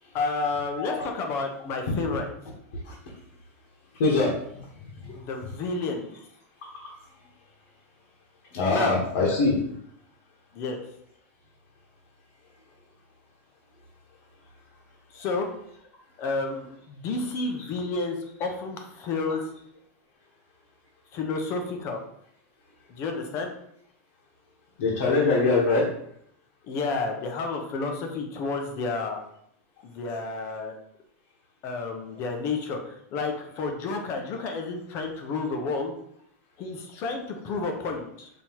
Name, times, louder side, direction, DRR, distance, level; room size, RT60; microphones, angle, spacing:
voice 1, 0.1-2.3 5.2-6.1 8.7-8.9 10.5-10.8 15.1-15.5 16.2-19.4 21.1-22.0 22.9-23.5 26.7-29.2 29.8-30.7 31.6-35.9 36.6-38.3, left 3 dB, 35° left, 4 dB, 0.7 m, -30 dB
voice 2, 2.7-3.2 3.9-5.6 6.6-7.3 8.5-9.8 17.6-17.7 24.8-25.9 30.3-30.4 34.4-34.5, left 3 dB, 60° left, -5 dB, 1.3 m, -26 dB
5.5 x 3.1 x 3.0 m, 0.71 s
supercardioid pair, 160°, 8 cm